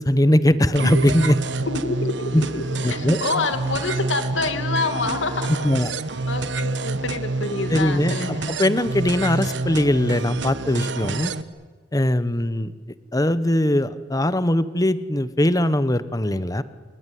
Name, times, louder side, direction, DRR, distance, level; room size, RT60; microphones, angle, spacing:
voice 1, 0.0-1.4 2.3-2.4 2.8-3.2 5.6-5.9 7.7-8.1 8.5-11.3 11.9-12.7 13.1-16.6, left 1 dB, 20° left, 14 dB, 1.0 m, -20 dB
sound 1, 0.8-11.4, right 3 dB, 70° right, 1.1 m, -27 dB
voice 2, 1.6-2.6 2.9-5.5 6.3-8.5, left 3 dB, 85° left, 8 dB, 2.2 m, -27 dB
28.0 x 21.5 x 9.4 m, 1.4 s
head